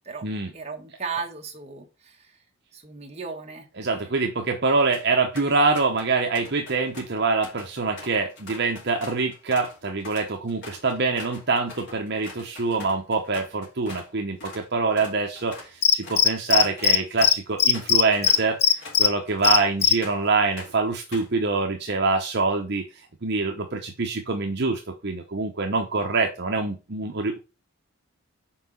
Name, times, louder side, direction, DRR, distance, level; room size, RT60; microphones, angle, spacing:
voice 1, 0.5-2.3 2.7-3.7, right 5 dB, 30° right, 1.5 m, -35 dB
voice 2, 3.8-22.8 23.2-27.4, right 3 dB, 50° right, 0.9 m, -25 dB
sound 1, 4.9-5.1 5.4-6.1 6.3-14.1 14.4-14.6 14.9-20.3 20.6-21.4, left 3 dB, 50° left, 3.1 m, -43 dB
Cricket, 15.8-17.0 17.2-17.3 17.6-19.1 19.4-19.9, left 7 dB, 30° left, 0.5 m, -17 dB
5.9 x 4.7 x 5.7 m
head